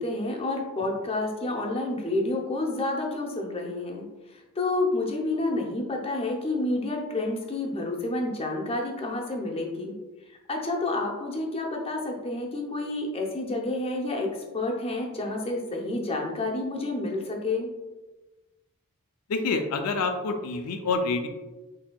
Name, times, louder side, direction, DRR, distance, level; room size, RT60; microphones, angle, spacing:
voice 1, 0.0-4.0 4.6-9.9 10.5-14.3 14.5-17.7, left 2 dB, 25° left, 0 dB, 0.6 m, -29 dB
voice 2, 19.3-21.3, left 3 dB, 85° left, 6 dB, 0.4 m, -27 dB
5.9 x 2.7 x 2.2 m, 1.1 s
head